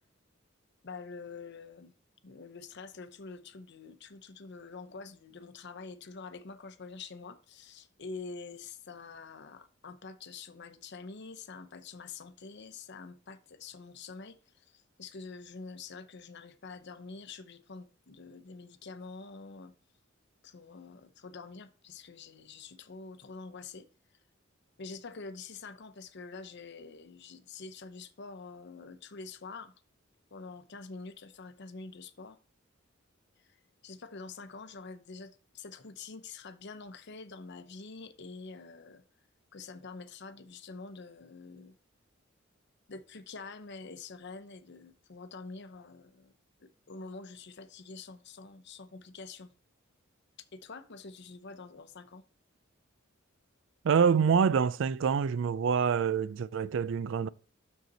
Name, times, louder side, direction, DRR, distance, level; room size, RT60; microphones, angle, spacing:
voice 1, 0.8-1.9 2.2-14.4 14.6-19.7 20.4-23.9 24.8-29.7 30.3-32.4 33.8-39.0 39.5-41.7 42.9-46.3 46.6-49.5 50.5-52.2, left 4 dB, 60° left, 0.8 m, -46 dB
voice 2, 53.8-57.3, right 6 dB, 65° right, 0.4 m, -26 dB
6.7 x 6.6 x 4.0 m
head